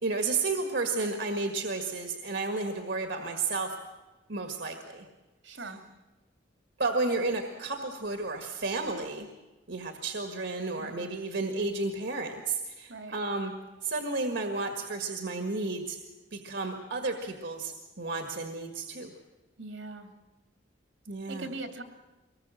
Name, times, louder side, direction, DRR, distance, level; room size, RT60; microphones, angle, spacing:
voice 1, 0.0-3.7 4.3-5.1 6.8-9.3 9.7-13.5 13.8-16.0 16.3-19.1 21.1-21.5, right 3 dB, 70° right, 5 dB, 1.7 m, -32 dB
voice 2, 5.4-5.8 10.8-11.2 12.9-13.2 19.6-20.1 21.3-21.8, right 2 dB, 85° right, 6 dB, 2.7 m, -41 dB
23.5 x 19.5 x 7.6 m, 1.1 s
head